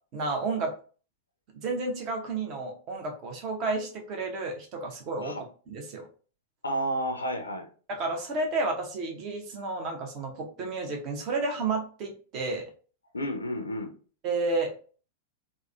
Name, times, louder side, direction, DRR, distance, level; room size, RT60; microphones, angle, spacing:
voice 1, 0.1-0.7 1.5-5.3 5.7-6.0 7.9-12.7 14.2-14.7, right 3 dB, 40° right, 2 dB, 0.8 m, -31 dB
voice 2, 6.6-7.7 13.1-13.9, equal, 75° left, 5 dB, 0.4 m, -31 dB
3.5 x 2.1 x 2.3 m, 0.39 s
figure-of-eight pair, 95°, 0 cm